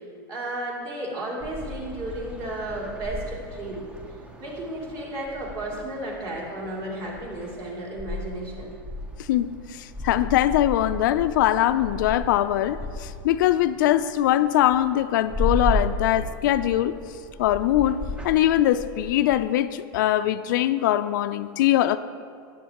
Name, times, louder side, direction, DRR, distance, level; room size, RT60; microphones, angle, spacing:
voice 1, 0.3-3.8 4.4-8.7, right 1 dB, 35° right, -4 dB, 2.8 m, -33 dB
sound 1, 1.4-19.4, left 1 dB, 10° right, 0.5 m, -35 dB
voice 2, 9.3-16.9 17.4-22.0, left 13 dB, 60° left, 12 dB, 0.4 m, -22 dB
12.5 x 9.9 x 2.9 m, 2.2 s
supercardioid pair, 155°, 12 cm